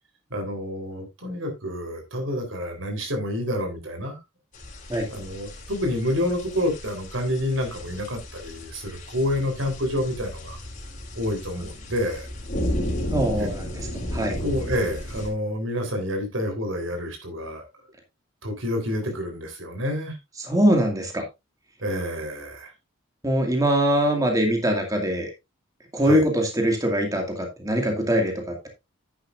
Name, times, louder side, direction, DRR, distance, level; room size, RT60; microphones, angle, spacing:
voice 1, 0.3-4.2 5.1-10.6 11.2-12.3 13.4-13.5 14.4-17.7 18.4-20.2 21.8-22.7 26.0-26.3, left 1 dB, 75° right, 3.8 m, -28 dB
sound 1, 4.5-15.3, left 1 dB, 40° left, 3.7 m, -34 dB
voice 2, 13.1-13.6 14.1-14.4 20.5-21.2 23.2-25.3 25.9-28.7, equal, 15° right, 2.2 m, -22 dB
10.5 x 9.9 x 2.6 m
head